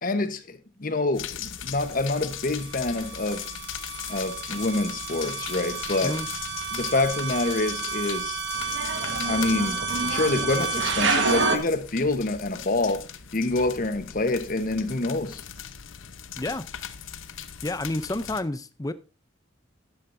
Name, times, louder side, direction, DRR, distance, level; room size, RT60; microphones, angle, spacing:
voice 1, 0.0-3.5 4.1-6.2 6.7-8.4 8.9-13.1 13.3-15.4, left 2 dB, 45° left, 1.1 m, -27 dB
sound 1, 1.1-18.4, left 9 dB, 85° left, 0.9 m, -38 dB
sound 2, 2.6-11.6, right 4 dB, 70° right, 1.5 m, -29 dB
voice 2, 17.6-18.9, left 2 dB, 20° left, 0.5 m, -29 dB
12.5 x 11.0 x 2.6 m
head